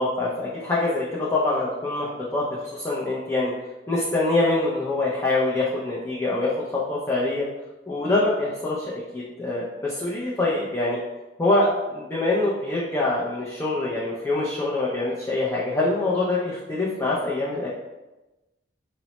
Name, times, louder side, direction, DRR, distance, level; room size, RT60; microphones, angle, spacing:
voice 1, 0.0-3.5 3.9-7.5 7.9-11.0 11.4-17.7, left 2 dB, 15° left, -6 dB, 0.4 m, -25 dB
3.9 x 2.0 x 2.9 m, 1.1 s
head